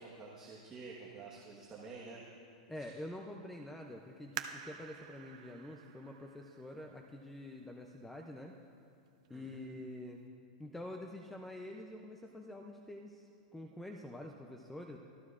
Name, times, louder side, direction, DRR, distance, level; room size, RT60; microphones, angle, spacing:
voice 1, 0.0-2.2 2.8-2.9 9.3-9.6, right 4 dB, 15° right, -4 dB, 1.3 m, -49 dB
voice 2, 2.7-8.5 9.3-10.2 10.6-15.0, left 1 dB, 5° left, 2 dB, 0.4 m, -47 dB
sound 1, 4.3-7.7 8.3-8.4 9.1-9.4 9.8-9.9, right 9 dB, 55° right, 0.7 m, -48 dB
25.0 x 13.5 x 2.4 m, 2.6 s
supercardioid pair, 170°, 4 cm